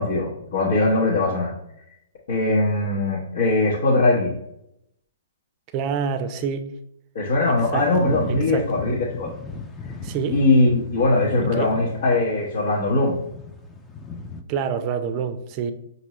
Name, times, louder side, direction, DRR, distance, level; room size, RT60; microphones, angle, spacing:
voice 1, 0.0-1.5 2.3-4.3 7.1-9.3 10.3-13.2, left 2 dB, 65° left, 1.0 m, -21 dB
voice 2, 5.7-6.7 7.7-7.9 8.5-8.7 10.0-10.4 11.4-11.7 14.5-15.7, right 6 dB, 35° right, 0.5 m, -26 dB
sound 1, 7.5-14.4, left 4 dB, 15° left, 0.5 m, -37 dB
5.2 x 2.7 x 3.0 m
hypercardioid pair, 130°, 0 cm